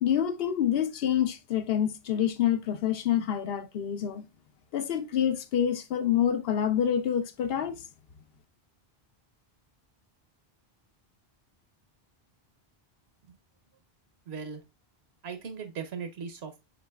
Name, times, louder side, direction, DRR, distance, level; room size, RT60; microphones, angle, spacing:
voice 1, 0.0-4.2 4.7-7.8, left 9 dB, 70° left, 0.8 m, -27 dB
voice 2, 14.3-14.6 15.2-16.6, right 6 dB, 90° right, 1.1 m, -38 dB
5.7 x 3.9 x 2.3 m
omnidirectional pair, 1.0 m